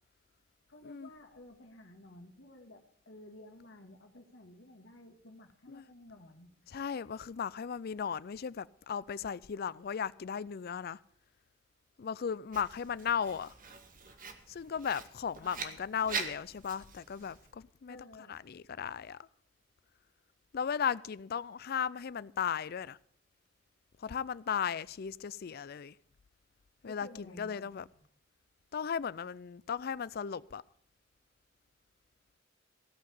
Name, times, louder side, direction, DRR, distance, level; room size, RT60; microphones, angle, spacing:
voice 1, 0.7-6.6 15.4-15.7 17.9-18.3 26.8-27.7, left 1 dB, 75° left, 2.1 m, -53 dB
voice 2, 6.7-11.0 12.0-13.5 14.5-18.0 18.3-19.2 20.5-23.0 24.0-26.0 26.8-27.9 28.7-30.6, left 7 dB, 55° left, 0.4 m, -36 dB
Writing, 12.5-17.5, right 5 dB, 45° right, 1.5 m, -43 dB
16.5 x 5.9 x 8.5 m
head